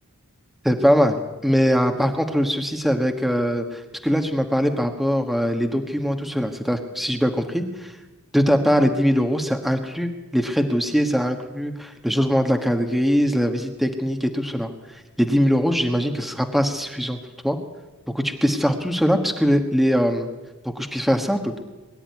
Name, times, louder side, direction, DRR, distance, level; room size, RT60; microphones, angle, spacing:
voice 1, 0.6-8.0 8.3-17.2 17.4-17.6 18.1-20.3 20.6-21.6, equal, ahead, 4 dB, 1.4 m, -22 dB
22.5 x 12.5 x 9.5 m, 1.1 s
head